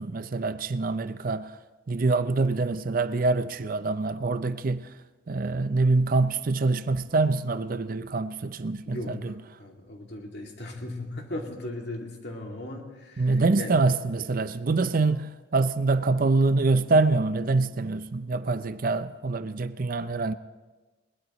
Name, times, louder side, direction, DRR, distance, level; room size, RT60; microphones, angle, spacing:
voice 1, 0.0-1.5 1.9-4.9 5.3-9.3 13.2-20.3, right 3 dB, 45° right, 0.5 m, -25 dB
voice 2, 8.9-13.7, left 1 dB, 60° left, 2.3 m, -37 dB
21.5 x 19.5 x 3.0 m
head